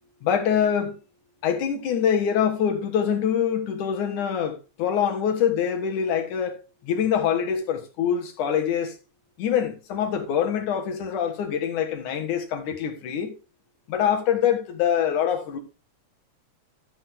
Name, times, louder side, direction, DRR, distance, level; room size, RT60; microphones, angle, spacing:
voice 1, 0.2-1.0 1.4-8.9 9.4-13.3 13.9-15.6, left 8 dB, 85° left, 3.1 m, -24 dB
13.0 x 7.8 x 3.5 m
omnidirectional pair, 3.4 m